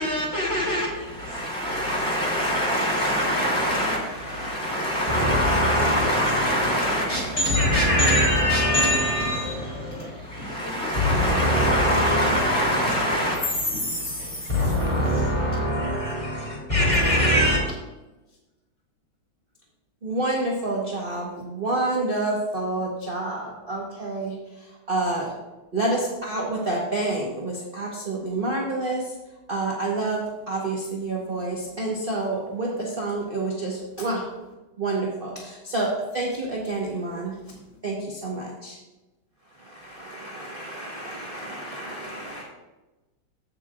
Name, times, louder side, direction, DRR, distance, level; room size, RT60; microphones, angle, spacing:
voice 1, 0.0-14.5 14.8-15.1, equal, 35° left, 2.3 m, -26 dB
voice 2, 2.6-5.3 5.8-9.0 20.0-24.3 24.9-25.3 25.7-29.0 29.5-34.2 34.8-37.3 37.8-38.8 39.7-42.4, right 2 dB, 35° right, 1.1 m, -29 dB
voice 3, 5.1-7.0 7.4-10.6 10.9-14.1 14.5-17.6, left 1 dB, 15° left, 2.5 m, -24 dB
15.0 x 6.7 x 2.4 m
omnidirectional pair, 2.2 m